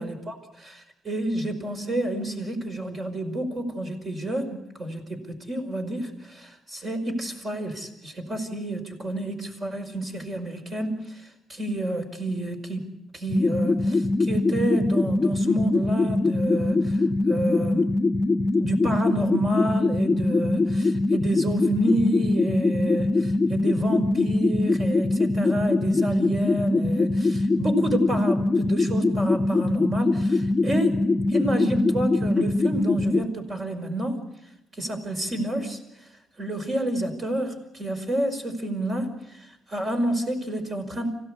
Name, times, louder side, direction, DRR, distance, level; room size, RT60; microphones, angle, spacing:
voice 1, 0.0-12.9 13.1-17.9 18.6-31.0 31.3-34.2 34.7-35.8 36.4-41.1, right 1 dB, 35° right, 5 dB, 5.2 m, -29 dB
sound 1, 13.3-33.2, left 2 dB, 30° left, 0.8 m, -23 dB
26.0 x 17.0 x 8.4 m, 0.86 s
cardioid pair, 90°, 0 cm